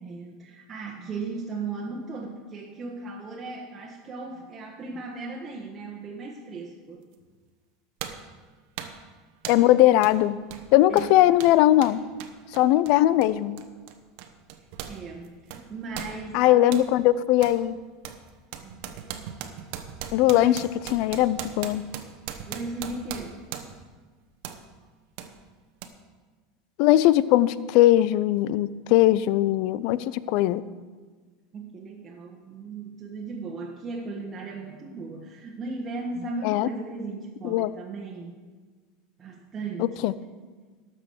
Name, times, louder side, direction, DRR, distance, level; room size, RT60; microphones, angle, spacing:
voice 1, 0.0-7.1 10.9-11.2 14.9-16.9 18.6-18.9 20.3-20.6 22.5-23.4 31.5-38.4 39.2-40.2, right 3 dB, 25° right, -2 dB, 1.4 m, -37 dB
sound 1, 7.1-7.3 8.0-8.3 8.8-9.0 9.4-9.7 10.0-10.2 10.5-15.0 15.2-16.9 17.4-17.6 18.0-23.9 24.4-24.6 25.2-25.3 25.8-25.9, right 9 dB, 65° right, 1.0 m, -39 dB
voice 2, 9.5-10.4 10.7-12.0 12.5-13.6 16.3-17.7 20.1-20.6 20.9-21.8 26.8-30.6 36.4-36.7 37.4-37.7 39.8-40.1, left 14 dB, 60° left, 17 dB, 0.4 m, -20 dB
12.5 x 6.1 x 6.5 m, 1.4 s
supercardioid pair, 125°, 0 cm